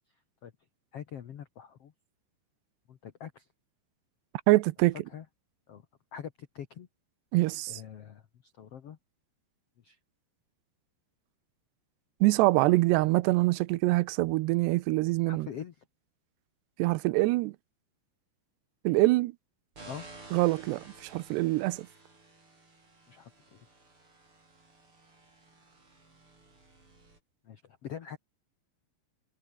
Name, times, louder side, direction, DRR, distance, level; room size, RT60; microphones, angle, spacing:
voice 1, 0.9-1.9 2.9-3.5 5.1-5.2 5.7-5.8 6.1-6.9 7.7-9.0 9.8-10.0 15.3-15.8 19.8-20.1 23.1-23.7 27.4-28.2, left 8 dB, 75° left, 1.4 m, -44 dB
voice 2, 4.5-5.0 7.3-7.8 12.2-15.5 16.8-17.6 18.8-19.3 20.3-21.9, right 20 dB, 90° right, 2.8 m, -25 dB
sound 1, 19.7-27.2, right 2 dB, 30° right, 8.1 m, -53 dB
omnidirectional pair, 4.9 m